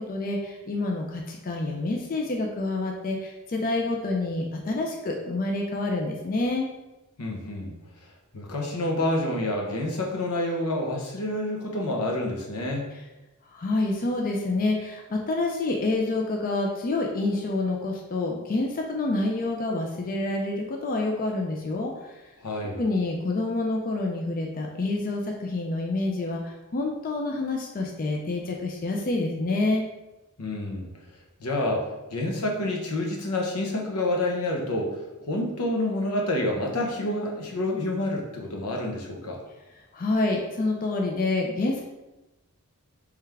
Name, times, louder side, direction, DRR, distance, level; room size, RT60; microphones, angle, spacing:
voice 1, 0.0-6.7 13.5-22.2 22.8-29.8 39.9-41.8, left 2 dB, 40° left, 1 dB, 0.4 m, -27 dB
voice 2, 7.2-7.7 8.3-12.9 22.4-22.8 30.4-30.9 31.4-31.8 32.1-35.0 35.3-39.4, left 1 dB, 85° left, 0 dB, 0.8 m, -28 dB
3.5 x 3.3 x 3.3 m, 1.0 s
head